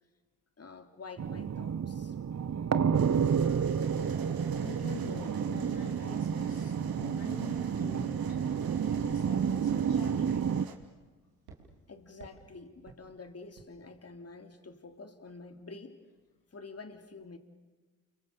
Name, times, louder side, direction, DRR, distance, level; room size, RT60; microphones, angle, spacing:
voice 1, 0.6-2.2 11.9-16.0 16.5-17.4, left 3 dB, 40° left, 7 dB, 3.4 m, -48 dB
sound 1, 1.2-10.6, right 7 dB, 45° right, 1.1 m, -30 dB
sound 2, 2.9-10.7, right 6 dB, 70° right, 2.8 m, -49 dB
voice 2, 4.4-10.8, left 6 dB, 75° left, 3 dB, 2.4 m, -47 dB
sound 3, 5.1-5.4 5.7-6.6 7.0-7.3 7.7-7.9 8.3-8.5 8.9-9.2 9.6-9.8 10.2-10.5 10.8-11.1 11.5-11.7 12.2-12.5 12.9-13.0 13.6-13.7, right 5 dB, 85° right, 3.4 m, -52 dB
29.5 x 25.0 x 6.9 m, 1.3 s
hypercardioid pair, 40°, 36 cm